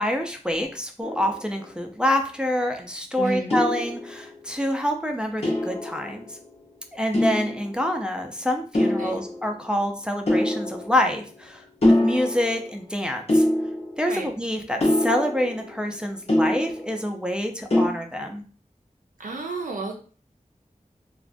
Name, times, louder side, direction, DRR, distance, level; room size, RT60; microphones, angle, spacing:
voice 1, 0.0-6.4 6.9-11.7 12.0-13.5 14.0-18.4, left 1 dB, 5° right, 2 dB, 0.4 m, -26 dB
sound 1, 1.0-2.0 3.5-4.5 5.4-6.6 7.1-8.1 8.7-9.7 10.3-11.5 11.8-12.9 13.3-14.3 14.8-17.2 17.7-17.9, left 1 dB, 50° left, 0.6 m, -25 dB
voice 2, 3.2-3.5 8.8-9.2 14.1-14.3 19.2-20.0, right 3 dB, 85° right, 1 dB, 0.4 m, -31 dB
2.4 x 2.1 x 2.5 m, 0.41 s
wide cardioid pair, 50°, 14 cm